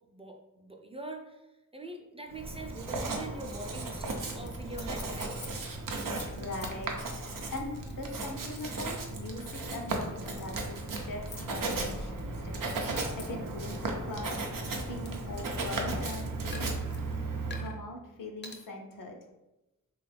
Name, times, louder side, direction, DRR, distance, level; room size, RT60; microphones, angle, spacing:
voice 1, 0.1-1.5 1.7-5.4, right 2 dB, 20° right, 2 dB, 0.4 m, -43 dB
Writing, 2.3-17.7, right 2 dB, 90° right, 0.5 m, -35 dB
sound 1, 3.4-3.7 4.0-4.1 4.5-4.6 4.7-5.5 5.9-10.0 10.3-10.7 11.3-11.5 12.2-13.2 13.6-16.1 16.5-17.0 17.5-17.8 18.4-18.6, left 4 dB, 35° left, 0.5 m, -48 dB
voice 2, 6.1-7.1 7.5-12.7 13.2-14.5 14.9-16.7 17.5-19.2, left 2 dB, 85° left, 1 dB, 0.6 m, -41 dB
3.0 x 2.4 x 3.2 m, 0.96 s
wide cardioid pair, 50°, 32 cm